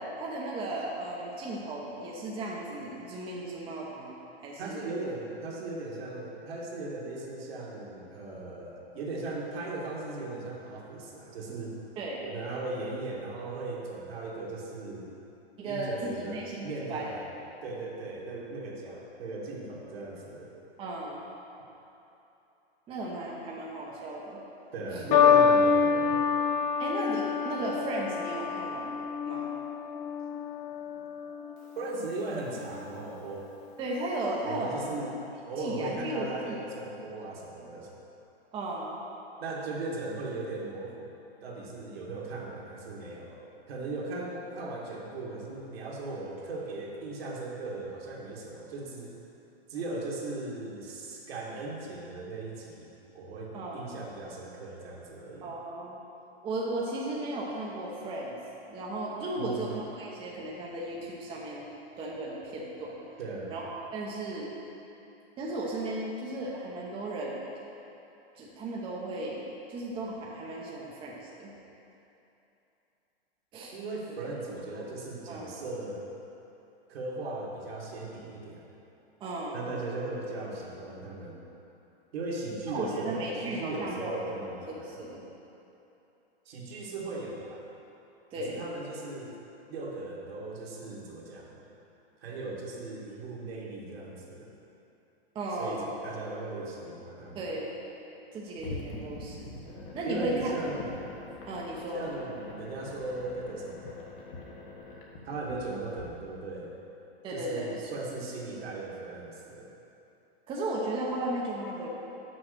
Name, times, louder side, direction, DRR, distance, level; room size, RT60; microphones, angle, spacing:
voice 1, 0.2-4.2 4.4-4.9 12.0-12.3 15.6-17.1 20.8-21.2 22.9-24.4 24.9-25.0 26.8-29.0 29.3-29.6 33.8-34.8 35.6-36.6 38.5-39.0 53.5-53.9 55.4-56.0 56.4-58.4 58.7-61.7 62.0-63.0 63.5-64.5 65.4-67.4 68.4-71.5 73.5-73.7 74.7-74.9 75.3-75.6 79.2-79.6 82.7-85.3 88.3-88.7 95.3-96.0 97.3-97.8 98.3-99.5 99.9-100.5 101.5-102.1 107.2-107.8 110.5-111.9, right 2 dB, 15° right, -4 dB, 0.8 m, -35 dB
voice 2, 4.6-11.8 12.2-15.1 15.6-17.3 17.6-20.5 24.7-26.2 31.8-33.5 34.4-37.9 39.4-41.1 41.4-49.2 49.7-55.5 59.4-59.7 63.2-63.5 73.7-76.0 76.9-78.7 79.5-81.4 82.1-85.0 86.5-87.6 88.4-89.4 89.7-91.6 92.2-94.5 95.6-97.4 100.1-100.9 101.9-104.2 105.2-106.7 107.3-109.7, right 2 dB, 65° right, -3 dB, 1.9 m, -38 dB
sound 1, 25.1-31.6 32.5-32.9, left 6 dB, 20° left, 0.6 m, -26 dB
sound 2, 98.6-106.0, left 2 dB, 60° left, 1.4 m, -44 dB
6.2 x 5.6 x 6.5 m, 2.9 s
hypercardioid pair, 140°, 32 cm